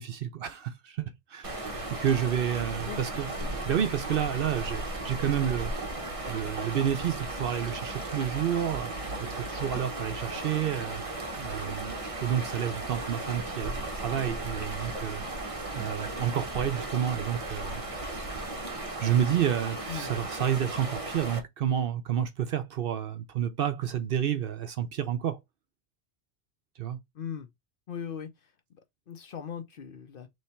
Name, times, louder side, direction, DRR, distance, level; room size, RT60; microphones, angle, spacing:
voice 1, 0.0-3.3 3.6-5.7 6.3-8.9 9.2-11.0 11.4-15.2 15.7-17.8 19.0-25.4 26.8-27.0, right 9 dB, 60° right, 0.7 m, -30 dB
sound 1, 1.4-21.4, right 2 dB, 30° right, 0.9 m, -36 dB
voice 2, 27.1-27.5 27.9-28.8 29.1-30.3, left 8 dB, 55° left, 0.8 m, -39 dB
3.3 x 3.2 x 4.2 m
omnidirectional pair, 1.2 m